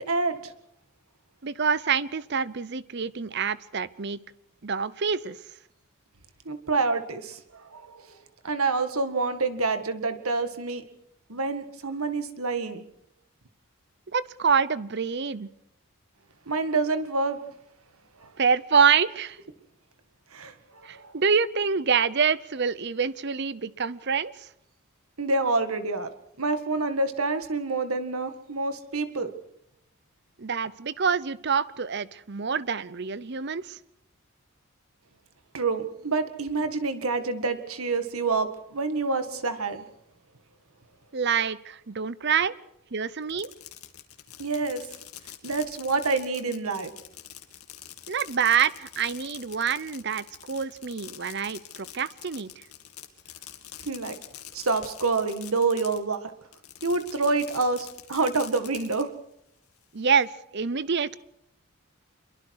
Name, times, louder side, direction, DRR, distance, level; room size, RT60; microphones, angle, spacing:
voice 1, 0.1-0.5 6.4-7.4 7.7-8.0 8.4-10.8 11.3-12.8 16.5-17.4 20.3-20.5 20.9-21.1 25.2-26.1 26.4-29.3 35.5-39.8 44.4-44.8 45.4-46.9 53.8-54.1 54.5-56.2 56.8-59.1, right 3 dB, 80° right, 9 dB, 1.9 m, -27 dB
voice 2, 1.4-4.2 4.6-5.4 14.1-15.5 18.4-19.4 20.8-24.5 30.4-33.8 41.1-42.5 42.9-43.5 48.1-52.5 59.9-61.2, right 6 dB, 50° right, 17 dB, 0.7 m, -26 dB
Fireworks, 43.2-56.2 56.5-59.0, left 11 dB, 85° left, 2.3 m, -45 dB
26.0 x 22.5 x 4.8 m, 0.78 s
head